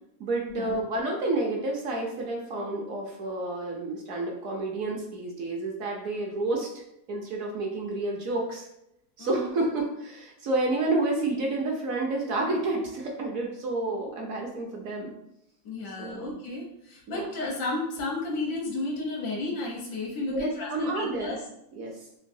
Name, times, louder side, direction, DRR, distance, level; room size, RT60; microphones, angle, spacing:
voice 1, 0.2-6.7 7.1-8.7 9.2-15.1 16.0-16.4 17.1-17.3 20.3-21.4 21.7-21.9, right 2 dB, 65° right, -1 dB, 0.9 m, -30 dB
voice 2, 9.2-9.5 15.6-21.4, left 2 dB, 85° left, -2 dB, 1.5 m, -33 dB
3.8 x 2.6 x 2.6 m, 0.80 s
omnidirectional pair, 1.7 m